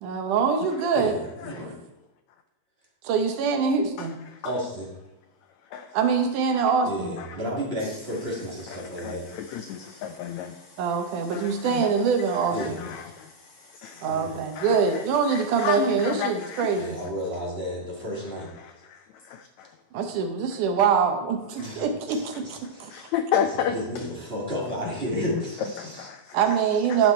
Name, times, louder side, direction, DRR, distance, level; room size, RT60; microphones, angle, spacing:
voice 1, 0.0-1.2 3.0-4.2 5.9-7.2 10.8-12.8 14.0-17.0 19.9-22.9 26.3-27.1, right 6 dB, 75° right, 5 dB, 2.3 m, -24 dB
voice 2, 0.9-1.7 4.4-4.9 6.8-9.3 12.5-12.9 14.1-14.3 16.7-18.5 21.6-23.1 23.7-26.1, equal, 25° right, -4 dB, 1.5 m, -32 dB
voice 3, 8.8-10.8 11.3-11.9 12.6-14.2 14.5-15.0 15.3-16.8 18.6-19.0 19.3-19.7 22.9-24.0 25.8-26.4 26.9-27.0, left 8 dB, 90° left, 7 dB, 1.5 m, -32 dB
11.0 x 5.7 x 4.4 m, 1.0 s
omnidirectional pair, 3.8 m